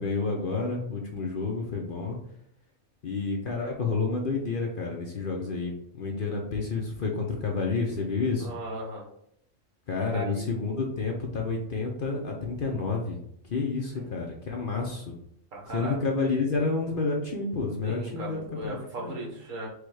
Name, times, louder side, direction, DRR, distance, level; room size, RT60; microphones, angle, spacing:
voice 1, 0.0-2.2 3.0-8.5 9.9-13.2 13.5-15.1 15.7-19.3, left 4 dB, 50° left, 0 dB, 0.7 m, -30 dB
voice 2, 8.4-9.1 10.1-10.5 13.9-14.1 14.6-14.7 15.5-16.0 17.8-19.7, right 2 dB, 75° right, -2 dB, 1.6 m, -37 dB
4.7 x 2.3 x 4.6 m, 0.73 s
omnidirectional pair, 1.4 m